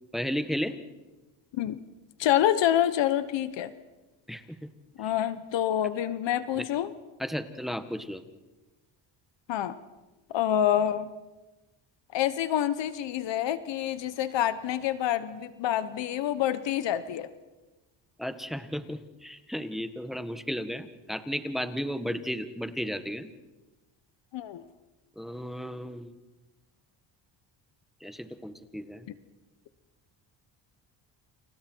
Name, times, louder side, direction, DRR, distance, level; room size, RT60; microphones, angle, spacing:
voice 1, 0.1-0.8 4.3-4.7 6.6-6.7 7.2-8.2 18.2-23.3 25.1-26.1 28.0-29.1, equal, ahead, 9 dB, 1.5 m, -34 dB
voice 2, 2.2-3.7 5.0-6.9 9.5-9.7 10.3-11.1 12.1-17.3 24.3-24.6, left 11 dB, 70° left, 13 dB, 1.2 m, -27 dB
29.5 x 28.0 x 4.6 m, 1.1 s
cardioid pair, 105°, 45 cm